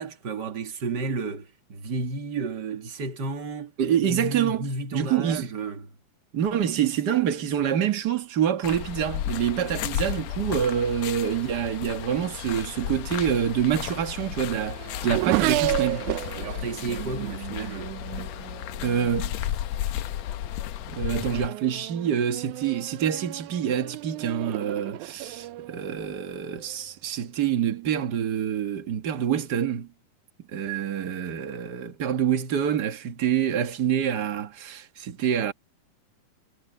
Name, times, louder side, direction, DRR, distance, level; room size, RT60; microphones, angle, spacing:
voice 1, 0.0-3.7 4.0-5.9 16.3-17.9, right 3 dB, 35° right, 2.3 m, -32 dB
voice 2, 3.8-5.5 6.3-16.1 18.8-19.4 20.9-29.9 30.5-35.5, right 9 dB, 50° right, 1.2 m, -26 dB
sound 1, 8.6-21.5, left 12 dB, 75° left, 1.7 m, -33 dB
Race car auto racing / Accelerating revving vroom, 13.4-19.3 20.1-20.5 20.9-26.8, right 17 dB, 80° right, 1.9 m, -33 dB
omnidirectional pair, 3.8 m